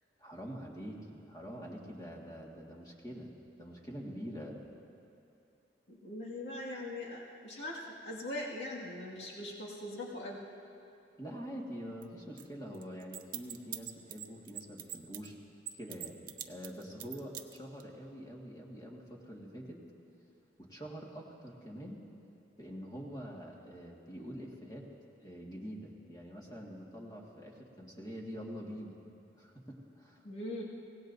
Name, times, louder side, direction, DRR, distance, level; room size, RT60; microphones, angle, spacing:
voice 1, 0.2-3.3 3.6-4.6 11.2-15.3 15.7-19.8 20.6-22.0 22.6-24.9 25.2-29.0 29.3-30.2, equal, 20° left, -2 dB, 1.9 m, -45 dB
voice 2, 5.9-10.4 30.2-30.6, left 1 dB, 75° left, -5 dB, 2.1 m, -41 dB
sound 1, 12.0-12.1 12.4-12.5 12.7-15.3 15.7-17.8, right 11 dB, 50° right, 0.6 m, -42 dB
24.5 x 17.0 x 2.7 m, 2.7 s
head